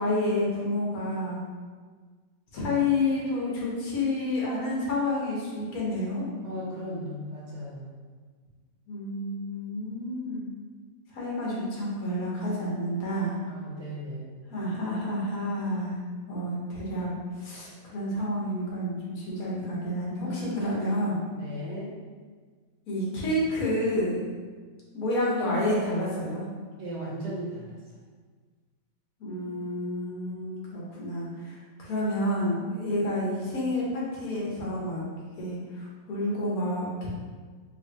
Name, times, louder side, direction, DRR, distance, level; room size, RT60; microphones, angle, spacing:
voice 1, 0.0-1.4 2.5-6.2 8.9-10.5 11.1-13.4 14.5-16.0 16.3-17.1 17.4-21.2 22.9-24.2 24.9-26.4 29.2-35.0 35.4-37.1, left 1 dB, 75° left, -5 dB, 1.5 m, -29 dB
voice 2, 6.4-7.9 13.5-14.4 20.3-21.0 21.3-21.9 26.8-27.8, equal, 55° right, -5 dB, 1.0 m, -37 dB
4.8 x 2.6 x 2.8 m, 1.5 s
omnidirectional pair, 1.5 m